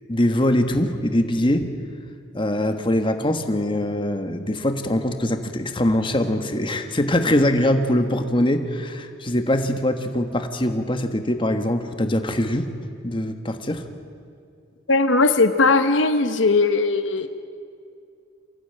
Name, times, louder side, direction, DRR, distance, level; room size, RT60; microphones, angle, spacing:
voice 1, 0.1-1.7 2.3-12.7 13.0-13.8, left 1 dB, 25° left, 7 dB, 1.4 m, -22 dB
voice 2, 14.9-17.3, left 3 dB, 70° left, 9 dB, 1.0 m, -18 dB
25.5 x 15.5 x 9.1 m, 2.4 s
head